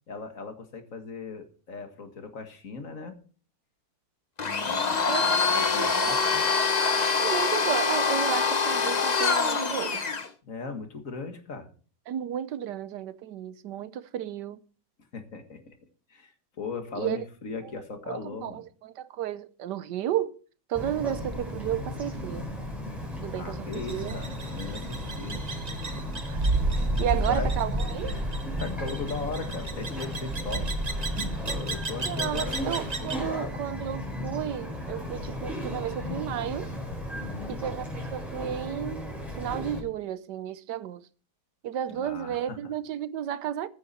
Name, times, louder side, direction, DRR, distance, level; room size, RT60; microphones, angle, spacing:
voice 1, 0.1-3.2 4.6-6.5 10.4-11.7 15.1-15.8 16.1-18.6 23.4-25.4 27.0-27.5 28.4-30.7 31.7-32.9 33.2-33.6 37.1-37.6 41.9-42.6, left 4 dB, 50° left, 2.0 m, -38 dB
Domestic sounds home sounds, 4.4-10.3, left 5 dB, 35° left, 0.8 m, -25 dB
voice 2, 5.1-6.3 7.1-10.1 12.1-14.6 17.0-17.2 17.6-17.7 18.1-20.4 20.7-22.5 23.2-24.2 26.3-26.4 27.0-28.2 32.0-36.7 37.5-41.1 41.6-43.7, right 10 dB, 80° right, 1.4 m, -33 dB
Bird vocalization bird call bird song, 20.7-39.8, left 1 dB, ahead, 4.6 m, -36 dB
sound 1, 23.7-33.2, right 2 dB, 30° right, 0.9 m, -32 dB
14.5 x 9.4 x 4.3 m
omnidirectional pair, 1.8 m